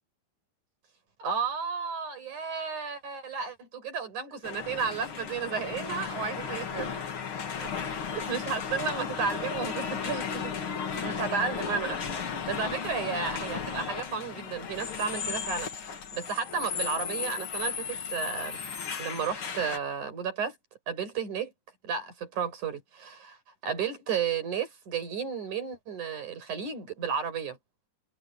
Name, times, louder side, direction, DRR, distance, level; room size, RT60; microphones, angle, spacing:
voice 1, 1.2-7.1 7.6-7.7 8.1-18.6 19.0-20.5 20.9-21.5 21.8-23.4 23.6-27.6, right 6 dB, 45° right, 6.9 m, -33 dB
sound 1, 4.4-19.8, left 6 dB, 50° left, 1.6 m, -35 dB
omnidirectional pair, 5.0 m